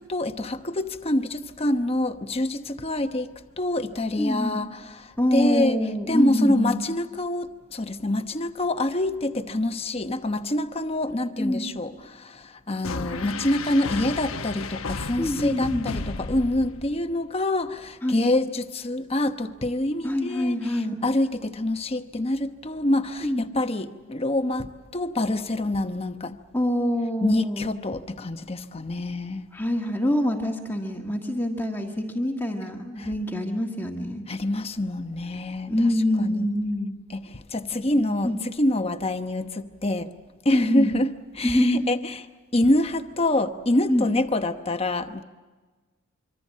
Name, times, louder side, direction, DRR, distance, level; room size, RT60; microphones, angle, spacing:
voice 1, 0.1-3.3 3.6-5.8 6.1-20.5 21.0-26.4 27.2-29.5 33.0-33.1 34.3-35.7 36.2-36.4 37.1-38.3 38.6-40.1 40.4-41.1 41.4-42.0 42.5-45.2, left 1 dB, 25° left, 1.0 m, -26 dB
voice 2, 4.2-4.6 5.2-6.8 11.3-11.7 15.2-15.9 18.0-18.2 20.0-21.0 23.2-23.5 26.5-27.8 29.5-34.2 35.7-37.0 37.7-38.4 40.5-40.9 41.4-41.8 43.9-44.1, left 1 dB, 10° left, 1.6 m, -25 dB
sound 1, 12.8-17.1, left 3 dB, 75° left, 1.0 m, -33 dB
25.5 x 25.0 x 7.5 m
head